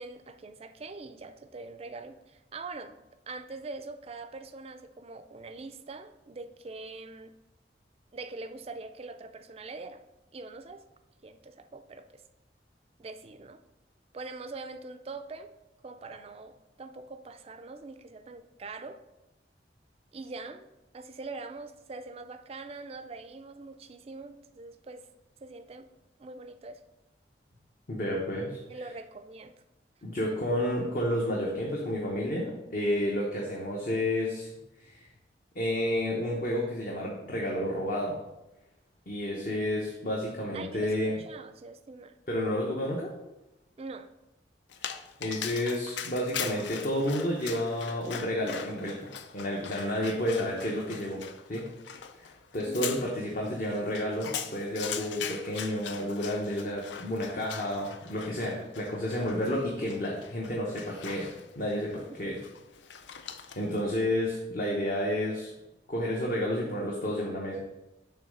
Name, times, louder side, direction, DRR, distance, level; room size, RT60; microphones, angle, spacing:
voice 1, 0.0-3.0 3.3-7.3 8.1-10.0 10.3-10.8 11.2-12.2 13.0-13.6 14.1-15.5 15.8-19.0 20.1-20.7 20.9-25.1 25.4-25.9 26.2-26.8 28.7-29.6 40.5-42.1 43.8-44.1 52.6-53.0 62.1-62.4, right 3 dB, 35° right, 10 dB, 0.4 m, -43 dB
voice 2, 27.9-28.6 30.0-34.5 34.8-35.1 35.5-38.2 39.1-41.2 42.3-43.1 44.8-51.7 52.2-62.4 63.6-65.5 65.9-67.6, left 1 dB, 50° left, -2 dB, 0.9 m, -31 dB
Dog, 44.7-63.8, left 7 dB, 80° left, 0.4 m, -41 dB
6.9 x 3.1 x 5.2 m, 0.95 s
head